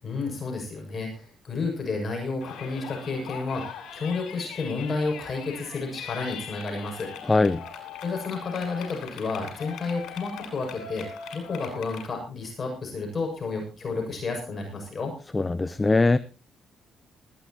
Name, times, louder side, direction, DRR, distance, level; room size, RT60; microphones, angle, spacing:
voice 1, 0.0-7.1 8.0-15.1, left 3 dB, 40° left, 7.1 m, -31 dB
Yell, 2.4-12.1, left 7 dB, 80° left, 6.2 m, -41 dB
voice 2, 7.3-7.6 15.3-16.2, left 3 dB, 20° left, 0.7 m, -21 dB
20.0 x 15.5 x 2.9 m
cardioid pair, 90°, 0 cm